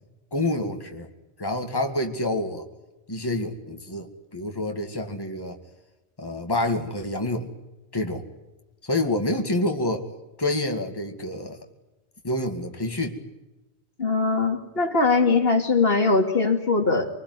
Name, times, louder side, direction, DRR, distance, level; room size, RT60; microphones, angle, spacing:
voice 1, 0.3-1.1 1.4-2.6 3.1-5.6 6.2-7.5 7.9-8.2 8.8-10.1 10.4-11.6 12.2-13.2, left 1 dB, 20° left, 3 dB, 2.3 m, -27 dB
voice 2, 14.0-17.1, left 3 dB, 60° left, 5 dB, 2.7 m, -21 dB
26.5 x 20.5 x 9.6 m, 1.1 s
omnidirectional pair, 1.1 m